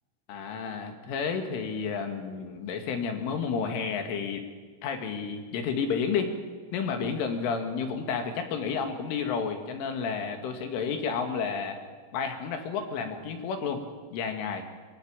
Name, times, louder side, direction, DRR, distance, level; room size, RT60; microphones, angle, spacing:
voice 1, 0.3-4.4 4.8-6.3 6.7-11.8 12.1-13.8 14.1-14.6, left 6 dB, 75° left, 5 dB, 4.6 m, -31 dB
23.5 x 22.0 x 8.9 m, 1.5 s
omnidirectional pair, 5.7 m